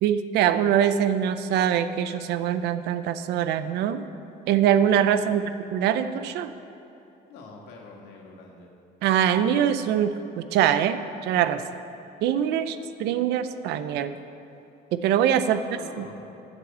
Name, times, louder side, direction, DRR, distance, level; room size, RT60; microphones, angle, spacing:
voice 1, 0.0-4.0 4.5-6.5 9.0-11.6 12.2-14.2 14.9-15.6 16.0-16.1, right 9 dB, 85° right, 12 dB, 0.6 m, -23 dB
voice 2, 5.1-5.5 7.3-8.7 15.5-16.1, left 3 dB, 85° left, 0 dB, 1.9 m, -45 dB
8.5 x 7.0 x 8.0 m, 3.0 s
cardioid pair, 110°, 17 cm